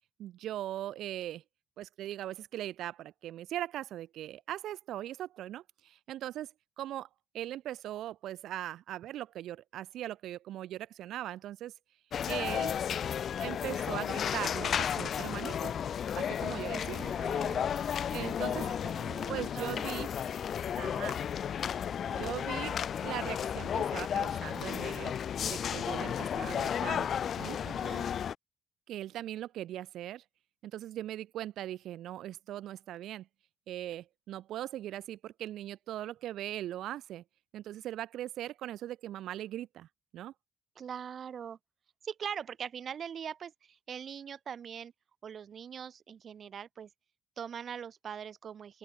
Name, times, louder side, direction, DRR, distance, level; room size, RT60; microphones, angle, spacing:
voice 1, 0.2-1.4 1.8-7.1 7.3-11.7 12.3-12.7 13.4-15.7 16.1-17.1 18.1-18.7 19.3-20.1 20.8-21.2 22.1-25.1 25.5-27.6 28.9-30.2 30.6-33.3 33.7-37.2 37.5-39.9 40.1-40.3, right 13 dB, 80° right, 5.7 m, -40 dB
sound 1, 12.1-28.3, left 8 dB, 60° left, 2.6 m, -33 dB
voice 2, 16.6-17.7 18.4-20.1 27.6-28.1 40.8-41.6 42.0-44.9 45.2-46.9 47.4-48.8, right 8 dB, 55° right, 6.0 m, -42 dB
open air
cardioid pair, 90°, 0 cm